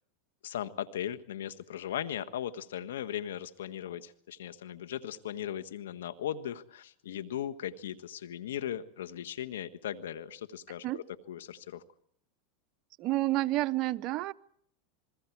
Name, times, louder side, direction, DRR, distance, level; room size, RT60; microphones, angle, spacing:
voice 1, 0.4-11.8, left 10 dB, 90° left, 12 dB, 1.4 m, -38 dB
voice 2, 13.0-14.3, right 17 dB, 50° right, 12 dB, 0.8 m, -29 dB
27.5 x 21.5 x 4.7 m, 0.66 s
supercardioid pair, 120°, 0 cm